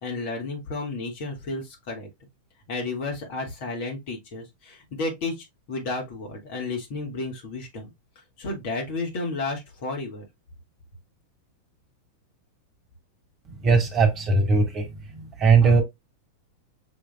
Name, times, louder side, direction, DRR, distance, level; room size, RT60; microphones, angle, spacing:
voice 1, 0.0-2.1 2.7-7.9 8.4-10.3, left 3 dB, 50° left, 2.0 m, -32 dB
voice 2, 13.6-14.9 15.1-15.8, right 4 dB, 30° right, 1.6 m, -19 dB
6.3 x 3.4 x 2.3 m
figure-of-eight pair, 90°, 0 cm